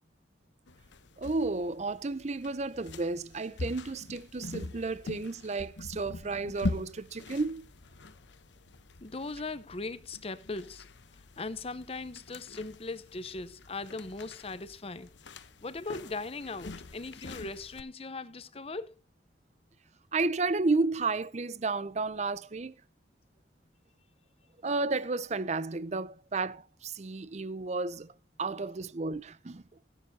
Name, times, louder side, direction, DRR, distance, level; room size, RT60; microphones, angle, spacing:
sound 1, 0.7-17.8, left 2 dB, 85° left, 0.9 m, -43 dB
voice 1, 1.2-7.7 20.1-22.7 24.6-28.1 28.4-29.6, right 3 dB, 40° right, 0.6 m, -32 dB
voice 2, 9.0-10.9 11.4-18.9, left 3 dB, 35° left, 0.8 m, -39 dB
16.0 x 11.0 x 2.8 m
head